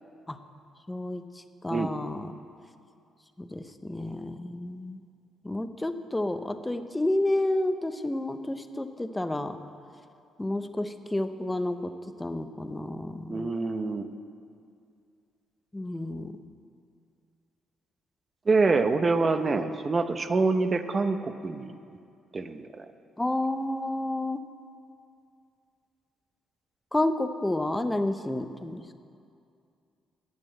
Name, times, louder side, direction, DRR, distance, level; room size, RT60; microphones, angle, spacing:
voice 1, 0.9-1.2 1.6-2.3 3.4-5.0 5.4-9.6 10.4-11.9 12.2-13.5 15.7-16.4 23.2-24.4 26.9-29.0, left 1 dB, 10° left, 9 dB, 0.7 m, -30 dB
voice 2, 13.3-14.1 18.5-21.7 22.3-22.9, right 3 dB, 35° right, 9 dB, 0.7 m, -26 dB
11.0 x 8.6 x 7.8 m, 2.5 s
cardioid pair, 90°, 0 cm